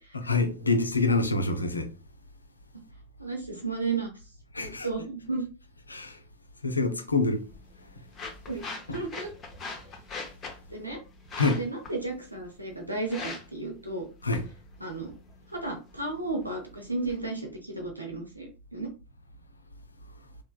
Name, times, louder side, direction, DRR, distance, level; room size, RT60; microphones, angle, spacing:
voice 1, 0.1-1.9 4.5-4.9 5.9-6.2 6.6-7.4 11.4-11.6 14.2-14.4, left 3 dB, 80° left, 0.4 m, -26 dB
voice 2, 3.2-4.1 4.6-5.5 8.5-8.7 8.9-9.3 10.7-11.0 11.6-14.1 14.8-15.1 15.5-18.9, right 3 dB, 85° right, 0.5 m, -33 dB
sound 1, 7.2-17.2, left 4 dB, 25° left, 0.6 m, -43 dB
3.1 x 2.1 x 2.2 m
figure-of-eight pair, 90°, 0 cm